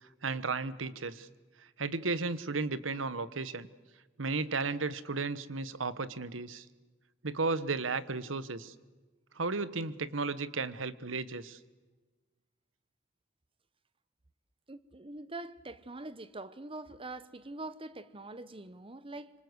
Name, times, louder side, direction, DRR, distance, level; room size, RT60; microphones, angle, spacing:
voice 1, 0.2-1.3 1.8-3.7 4.2-6.6 7.2-8.7 9.3-11.6, right 3 dB, 85° right, 1.2 m, -34 dB
voice 2, 14.7-19.3, right 2 dB, 30° right, 1.1 m, -44 dB
26.5 x 25.0 x 8.1 m
head